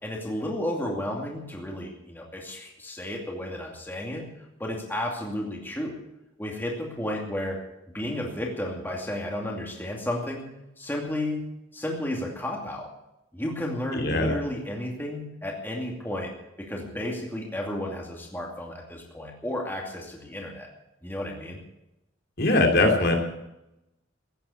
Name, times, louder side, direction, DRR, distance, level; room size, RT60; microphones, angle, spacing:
voice 1, 0.0-4.3 4.6-6.0 6.4-7.6 7.9-10.5 10.8-11.5 11.7-12.9 13.3-16.3 16.6-20.7 21.0-21.6, left 1 dB, 10° left, -1 dB, 2.5 m, -32 dB
voice 2, 13.9-14.3 22.4-23.1, left 2 dB, 55° left, 2 dB, 2.9 m, -21 dB
15.5 x 10.0 x 8.4 m, 0.89 s
head